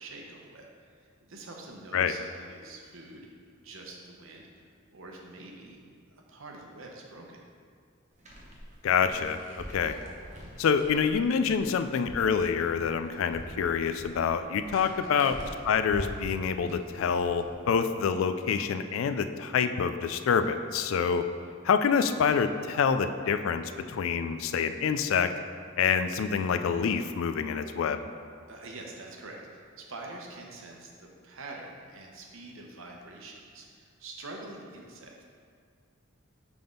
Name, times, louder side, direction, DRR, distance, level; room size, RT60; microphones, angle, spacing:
voice 1, 0.0-3.3 3.6-7.4 14.9-15.3 28.5-35.2, right 2 dB, 70° right, 0 dB, 0.9 m, -46 dB
sound 1, 8.2-18.0, equal, 35° right, 0.9 m, -45 dB
voice 2, 8.8-10.0 10.6-15.4 15.7-21.2 21.6-25.3 25.8-28.0, left 6 dB, 70° left, 9 dB, 0.3 m, -27 dB
5.9 x 3.6 x 5.2 m, 2.1 s
head